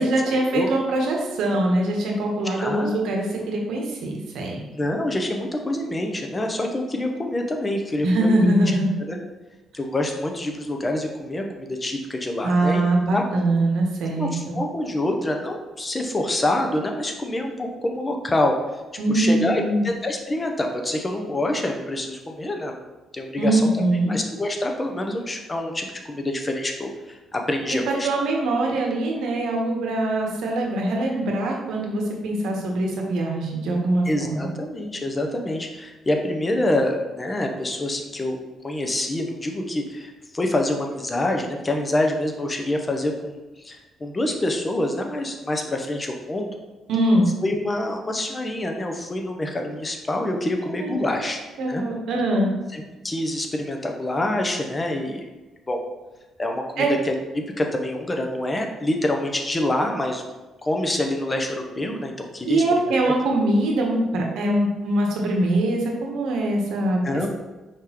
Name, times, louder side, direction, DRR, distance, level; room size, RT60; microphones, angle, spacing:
voice 1, 0.0-4.6 8.0-9.0 12.4-14.6 19.0-19.9 23.4-24.1 27.7-34.5 46.9-47.3 50.8-50.9 51.6-52.5 56.8-56.9 62.4-67.0, right 1 dB, 80° right, 0 dB, 0.9 m, -22 dB
voice 2, 2.5-3.0 4.7-9.2 9.7-12.8 13.1-13.2 14.1-18.6 19.1-22.8 23.1-23.6 24.1-28.1 34.1-38.4 38.6-46.5 47.4-51.4 51.7-51.8 52.7-55.3 55.7-55.8 56.4-60.2 60.6-62.9 67.0-67.3, left 1 dB, 25° left, 3 dB, 0.7 m, -26 dB
4.8 x 3.7 x 2.9 m, 1.1 s
cardioid pair, 90°, 0 cm